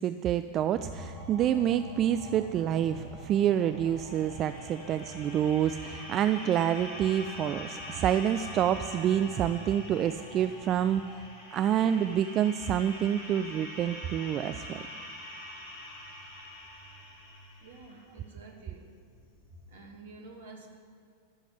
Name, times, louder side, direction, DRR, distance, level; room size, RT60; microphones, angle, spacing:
voice 1, 0.0-11.2 11.5-14.8, right 10 dB, 30° right, 10 dB, 0.4 m, -28 dB
sound 1, 0.7-19.7, left 1 dB, 45° left, 3.0 m, -44 dB
voice 2, 17.6-18.9 19.6-20.7, right 3 dB, 60° right, 2 dB, 2.2 m, -49 dB
13.5 x 7.0 x 9.5 m, 2.2 s
figure-of-eight pair, 90°, 0 cm